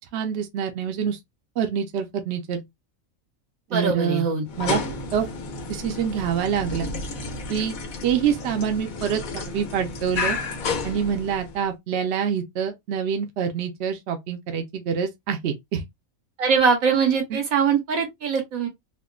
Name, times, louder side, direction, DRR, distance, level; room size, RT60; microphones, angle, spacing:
voice 1, 0.1-1.2 1.6-2.6 3.7-4.8 5.1-5.3 5.7-6.9 7.5-7.8 8.0-10.4 10.8-15.8 17.3-17.4, right 8 dB, 60° right, 0.8 m, -26 dB
voice 2, 3.7-4.4 16.4-18.7, right 5 dB, 85° right, 1.5 m, -22 dB
sound 1, 4.5-11.7, left 3 dB, 85° left, 1.3 m, -31 dB
3.5 x 2.2 x 2.3 m
omnidirectional pair, 1.4 m